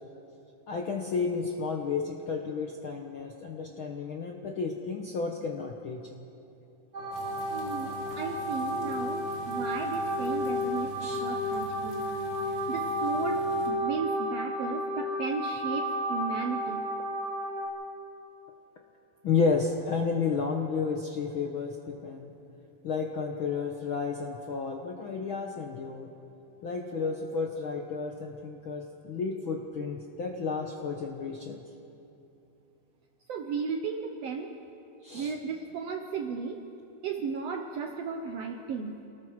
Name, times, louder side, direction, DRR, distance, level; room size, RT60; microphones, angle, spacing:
voice 1, 0.7-6.0 11.0-11.2 19.2-22.3 22.8-26.1 26.6-31.6 35.0-35.3, left 5 dB, 65° left, 1 dB, 1.3 m, -32 dB
sound 1, 6.9-17.7, equal, 40° right, 4.6 m, -32 dB
sound 2, 7.1-13.7, equal, 20° left, 3.4 m, -46 dB
voice 2, 7.5-12.1 12.7-16.9 33.3-34.5 35.1-36.6 37.0-39.0, right 5 dB, 70° right, 4 dB, 1.6 m, -35 dB
29.0 x 19.5 x 4.8 m, 2.8 s
omnidirectional pair, 3.9 m